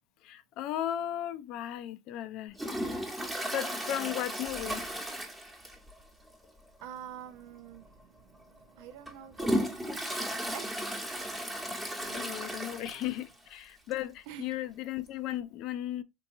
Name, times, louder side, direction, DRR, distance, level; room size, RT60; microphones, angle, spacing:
voice 1, 0.2-2.6 3.5-4.8 12.1-16.0, left 12 dB, 60° left, 0.4 m, -36 dB
Toilet flush, 2.6-6.0 6.3-6.4 6.8-6.9 7.7-7.9 8.4-13.3 13.6-13.7 13.9-14.0 15.1-15.2, equal, 10° right, 1.1 m, -35 dB
voice 2, 6.8-8.1 8.5-10.7 12.0-12.7 14.3-14.5, right 9 dB, 70° right, 0.5 m, -47 dB
3.7 x 2.7 x 2.6 m
supercardioid pair, 95°, 0 cm